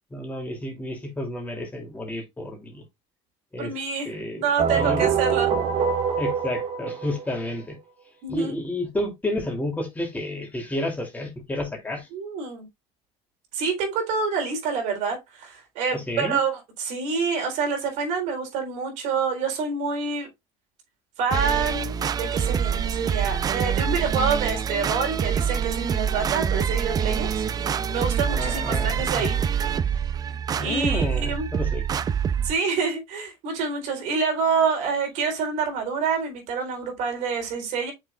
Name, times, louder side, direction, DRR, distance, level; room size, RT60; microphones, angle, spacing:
voice 1, 0.1-2.8 3.5-3.7 4.0-5.0 6.2-7.8 8.3-12.1 15.9-16.4 27.7-27.9 28.3-29.3 30.6-31.8, left 1 dB, 10° left, 3.1 m, -31 dB
voice 2, 3.6-5.5 8.2-8.5 12.1-12.7 13.5-20.3 21.2-29.4 30.6-31.5 32.4-37.9, right 5 dB, 70° right, 3.9 m, -27 dB
sound 1, 4.6-7.5, right 7 dB, 55° right, 2.0 m, -24 dB
sound 2, 21.3-32.5, right 8 dB, 30° right, 0.6 m, -25 dB
8.3 x 6.5 x 2.5 m
cardioid pair, 130°, 13 cm